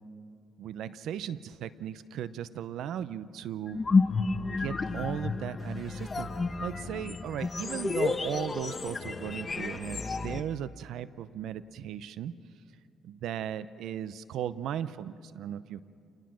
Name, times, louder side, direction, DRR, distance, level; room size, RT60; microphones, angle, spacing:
voice 1, 0.6-3.8 4.5-6.3 6.6-12.3 13.0-15.8, right 10 dB, 80° right, 15 dB, 0.7 m, -37 dB
sound 1, 3.7-10.4, left 4 dB, 30° left, 1.0 m, -30 dB
29.0 x 19.5 x 6.2 m, 2.4 s
cardioid pair, 100°, 0 cm